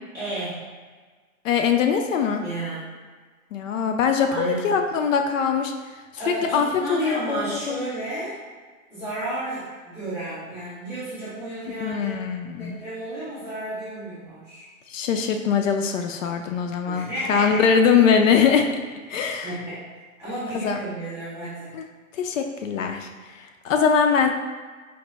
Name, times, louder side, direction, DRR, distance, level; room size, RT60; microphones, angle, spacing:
voice 1, 0.1-0.7 2.4-2.9 4.3-4.8 6.1-8.4 8.9-12.1 12.6-14.6 16.9-17.7 19.2-19.9 20.2-21.8, right 1 dB, 10° right, -16 dB, 0.4 m, -32 dB
voice 2, 1.4-2.4 3.5-5.7 6.5-7.4 7.7-7.8 11.8-12.8 14.9-18.8 19.1-19.5 20.5-20.8 21.7-21.8 22.1-23.1 23.3-24.3, left 6 dB, 65° left, 5 dB, 0.5 m, -22 dB
4.5 x 2.1 x 2.9 m, 1.5 s
hypercardioid pair, 160°, 42 cm